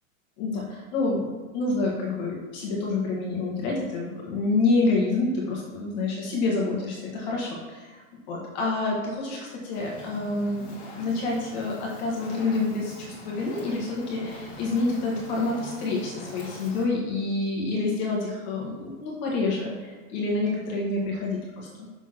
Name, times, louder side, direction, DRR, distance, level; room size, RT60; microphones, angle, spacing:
voice 1, 0.4-1.3 1.5-8.0 8.3-21.9, left 3 dB, 30° left, -3 dB, 1.4 m, -28 dB
Fire, 9.7-16.8, left 2 dB, 15° left, 1.6 m, -43 dB
6.0 x 4.4 x 5.9 m, 1.4 s
supercardioid pair, 175°, 41 cm